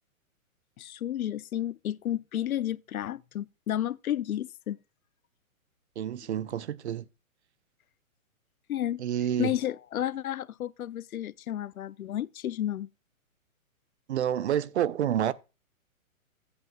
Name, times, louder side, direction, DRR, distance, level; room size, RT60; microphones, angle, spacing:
voice 1, 0.8-4.8 8.7-9.0 9.4-12.9, left 11 dB, 90° left, 0.7 m, -32 dB
voice 2, 6.0-7.1 9.0-9.6 14.1-15.3, right 10 dB, 55° right, 0.7 m, -28 dB
15.0 x 8.3 x 2.3 m
hypercardioid pair, 160°, 42 cm